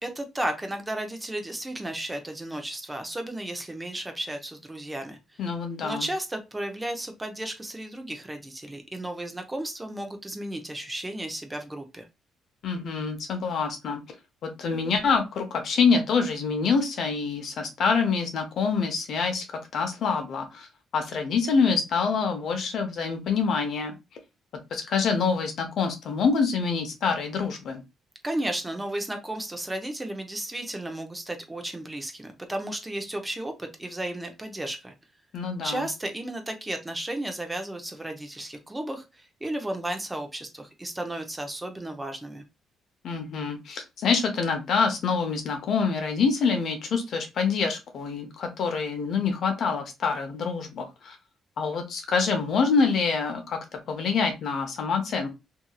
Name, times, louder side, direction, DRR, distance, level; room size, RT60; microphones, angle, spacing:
voice 1, 0.0-5.2 5.8-12.0 28.2-34.9 35.6-42.4, right 1 dB, 15° right, 5 dB, 0.6 m, -34 dB
voice 2, 5.4-6.1 12.6-14.0 14.4-19.4 19.7-20.7 20.9-23.9 24.7-27.8 35.3-35.9 43.0-51.2 51.6-53.6 53.9-55.3, left 5 dB, 65° left, 5 dB, 0.8 m, -26 dB
2.7 x 2.7 x 2.3 m, 0.24 s
cardioid pair, 90°, 0 cm